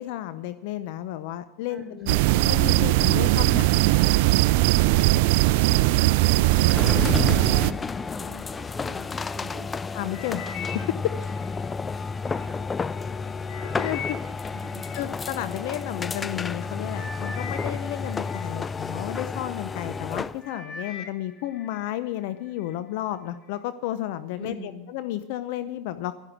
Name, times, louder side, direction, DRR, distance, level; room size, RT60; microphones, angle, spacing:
voice 1, 0.0-2.2 2.4-3.8 6.6-6.8 9.9-11.1 13.5-14.2 14.9-26.1, left 13 dB, 65° left, 12 dB, 0.7 m, -32 dB
voice 2, 1.7-2.3 5.2-9.7 11.2-11.3 12.4-12.6 14.2-15.0 24.4-24.9, right 1 dB, 5° left, 1 dB, 4.7 m, -45 dB
sound 1, 2.1-7.7, right 18 dB, 65° right, 0.4 m, -19 dB
sound 2, 6.7-20.4, left 4 dB, 20° left, 0.3 m, -31 dB
sound 3, 10.1-12.5 13.0-15.8 16.5-16.7 16.9-19.3 19.8-20.1 20.4-21.9 22.3-22.7 23.4-23.5, left 6 dB, 40° left, 1.6 m, -41 dB
11.5 x 11.0 x 6.0 m, 1.1 s
hypercardioid pair, 95°, 0 cm